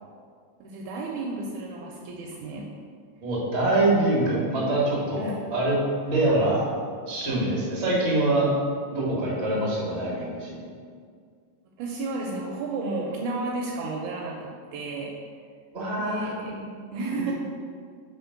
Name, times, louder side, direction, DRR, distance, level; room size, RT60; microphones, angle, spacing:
voice 1, 0.6-2.7 5.2-5.4 11.8-15.2 16.0-17.3, right 3 dB, 80° right, -1 dB, 1.9 m, -32 dB
voice 2, 3.2-5.8 6.0-6.6 7.1-8.4 8.9-10.6 15.7-16.3 17.1-17.2, right 2 dB, 35° right, -6 dB, 1.1 m, -24 dB
4.4 x 4.1 x 5.6 m, 2.1 s
omnidirectional pair, 3.8 m